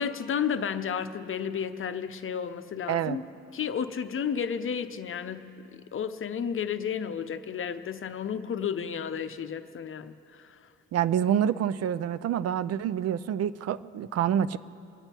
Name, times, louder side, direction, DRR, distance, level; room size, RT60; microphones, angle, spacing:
voice 1, 0.0-3.2 3.5-5.5 5.9-10.6, left 7 dB, 45° left, 10 dB, 0.7 m, -32 dB
voice 2, 2.9-3.2 10.9-14.6, right 9 dB, 55° right, 15 dB, 0.4 m, -27 dB
24.0 x 8.8 x 4.4 m, 2.7 s
cardioid pair, 90°, 30 cm